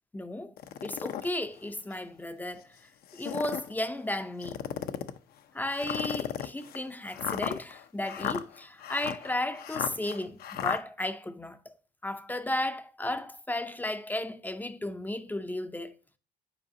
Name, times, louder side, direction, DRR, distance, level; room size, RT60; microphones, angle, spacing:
voice 1, 0.1-0.5 0.8-2.8 3.1-4.7 5.5-11.7 12.0-16.0, left 1 dB, 10° left, 0.5 m, -34 dB
sound 1, 0.6-1.3 1.9-2.0 3.0-3.7 4.4-5.2 5.8-10.8, left 10 dB, 65° left, 0.6 m, -35 dB
7.8 x 4.8 x 2.6 m
cardioid pair, 110°, 17 cm